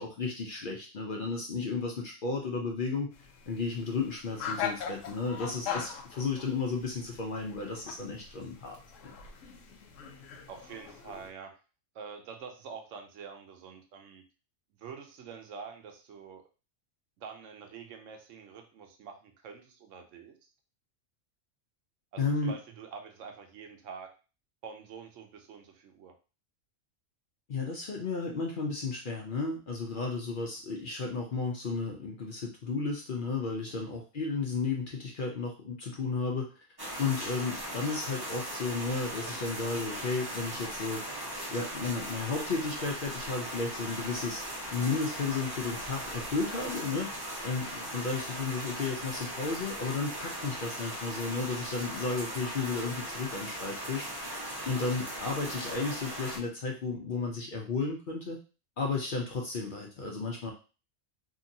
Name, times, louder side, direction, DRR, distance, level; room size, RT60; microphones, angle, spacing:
voice 1, 0.0-3.1 3.5-8.8 22.2-22.5 27.5-36.5 37.0-41.0 41.5-44.4 44.7-47.1 47.4-54.1 54.7-58.4 58.8-60.5, left 4 dB, 55° left, 0 dB, 0.6 m, -33 dB
sound 1, 3.1-11.3, left 7 dB, 85° left, 1.0 m, -41 dB
voice 2, 10.5-11.5 11.9-14.2 14.8-16.5 17.2-20.4 22.1-24.1 24.6-26.1 33.7-33.9, right 6 dB, 80° right, 5 dB, 1.0 m, -46 dB
sound 2, 36.8-56.4, equal, 25° right, 0.6 m, -38 dB
2.8 x 2.7 x 2.6 m, 0.33 s
omnidirectional pair, 1.3 m